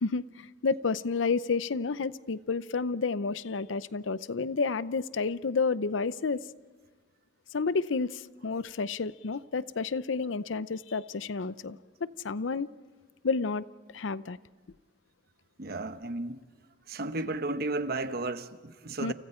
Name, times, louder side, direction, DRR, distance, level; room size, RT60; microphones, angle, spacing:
voice 1, 0.0-6.5 7.5-12.7 13.2-13.6 13.9-14.4 19.0-19.1, left 4 dB, 90° left, 0.6 m, -30 dB
voice 2, 15.6-16.4 16.9-19.1, right 2 dB, 55° right, 1.0 m, -33 dB
29.5 x 29.0 x 4.4 m
head